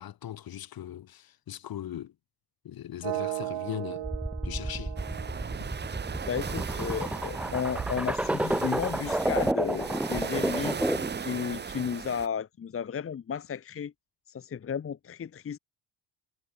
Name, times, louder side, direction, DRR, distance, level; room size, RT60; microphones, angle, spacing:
voice 1, 0.0-2.1 2.6-4.1 4.4-4.9, left 11 dB, 55° left, 2.6 m, -39 dB
sound 1, 3.0-7.0, right 16 dB, 85° right, 4.8 m, -38 dB
sound 2, 4.0-11.2, right 1 dB, 5° right, 0.4 m, -31 dB
sound 3, 5.0-12.3, right 6 dB, 25° right, 1.0 m, -37 dB
voice 2, 6.2-10.8 11.2-13.9 14.3-15.6, left 7 dB, 30° left, 1.2 m, -33 dB
cardioid pair, 140°, 43 cm